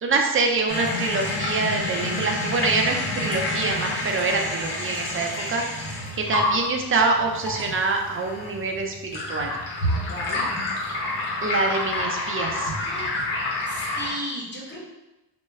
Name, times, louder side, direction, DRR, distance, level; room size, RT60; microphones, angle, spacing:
voice 1, 0.0-5.6 6.2-9.5 11.4-12.7, right 3 dB, 30° right, 2 dB, 0.4 m, -25 dB
sound 1, 0.7-14.1, left 2 dB, 85° left, 0.9 m, -28 dB
voice 2, 10.1-10.5 12.8-13.2 13.7-14.8, equal, 25° left, -4 dB, 0.9 m, -34 dB
2.2 x 2.1 x 3.3 m, 0.99 s
cardioid pair, 75°, 44 cm